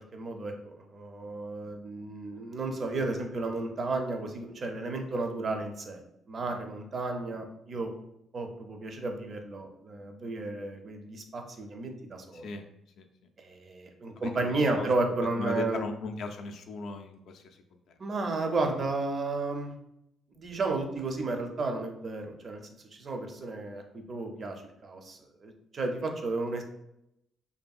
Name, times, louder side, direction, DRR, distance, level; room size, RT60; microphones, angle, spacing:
voice 1, 0.1-6.0 6.3-7.9 8.3-12.5 13.4-15.8 18.0-19.8 20.3-22.6 22.9-26.6, right 3 dB, 45° right, 4 dB, 0.5 m, -33 dB
voice 2, 12.3-12.6 13.0-13.1 14.2-14.9 15.4-18.0 18.8-18.9, left 3 dB, 70° left, 4 dB, 0.3 m, -38 dB
2.6 x 2.5 x 2.3 m, 0.80 s
cardioid pair, 90°, 0 cm